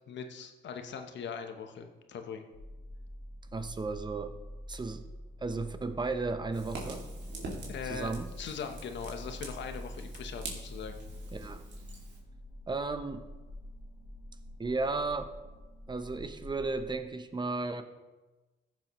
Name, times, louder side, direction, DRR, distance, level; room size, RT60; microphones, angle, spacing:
voice 1, 0.1-2.5 7.7-8.1 8.4-11.0, left 6 dB, 65° left, 6 dB, 1.1 m, -40 dB
sound 1, 2.5-17.0, equal, 90° left, 1.7 m, -46 dB
voice 2, 3.5-4.3 4.7-5.1 5.4-7.0 7.8-8.3 11.3-11.6 12.7-13.2 14.6-15.3 15.9-17.8, right 3 dB, 20° right, 9 dB, 0.8 m, -34 dB
Fire, 6.5-12.2, right 3 dB, 60° right, 2.5 m, -46 dB
14.5 x 7.3 x 3.1 m, 1.2 s
cardioid pair, 90°, 20 cm